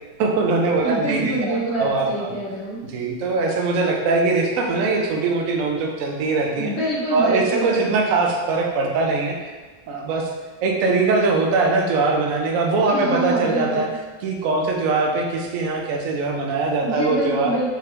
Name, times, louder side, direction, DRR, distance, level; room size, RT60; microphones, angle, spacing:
voice 1, 0.2-2.3 2.8-6.7 7.1-9.3 9.9-10.3 10.6-13.9 14.2-17.5, right 3 dB, 80° right, 0 dB, 0.7 m, -21 dB
voice 2, 0.8-2.8 6.6-7.8 12.9-13.9 16.8-17.7, right 1 dB, 50° left, -6 dB, 0.8 m, -26 dB
3.6 x 3.0 x 3.3 m, 1.3 s
omnidirectional pair, 2.1 m